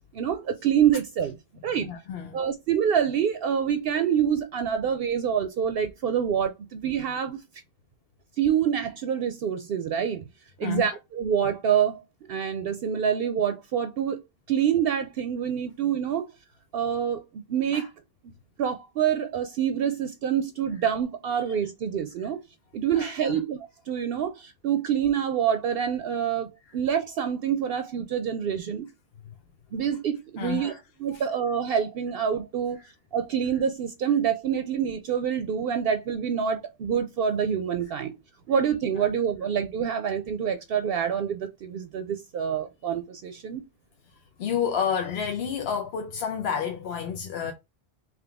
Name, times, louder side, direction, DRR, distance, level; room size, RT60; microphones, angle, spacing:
voice 1, 0.1-1.3 1.6-1.9 2.3-7.4 8.4-10.2 10.6-12.0 12.3-14.2 14.5-16.3 16.7-17.9 18.6-22.4 22.7-23.6 23.9-28.9 29.7-30.7 31.0-32.8 33.1-38.2 38.5-43.6, right 8 dB, 70° right, 0.7 m, -26 dB
voice 2, 1.8-2.4 10.6-11.0 17.7-17.9 21.3-21.4 22.9-23.4 29.2-29.3 30.4-30.8 31.1-31.2 44.4-47.5, left 7 dB, 80° left, 0.9 m, -30 dB
3.7 x 3.1 x 3.4 m
omnidirectional pair, 1.1 m